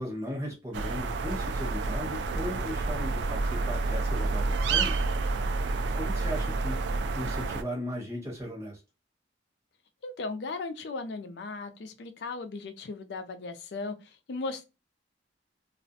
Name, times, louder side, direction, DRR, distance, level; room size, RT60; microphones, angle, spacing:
voice 1, 0.0-5.0 5.9-6.8 7.1-8.8, equal, 15° right, 1.0 m, -37 dB
sound 1, 0.7-7.6, right 3 dB, 75° right, 0.3 m, -29 dB
voice 2, 10.0-14.6, left 3 dB, 70° left, 0.4 m, -37 dB
2.4 x 2.0 x 2.6 m
head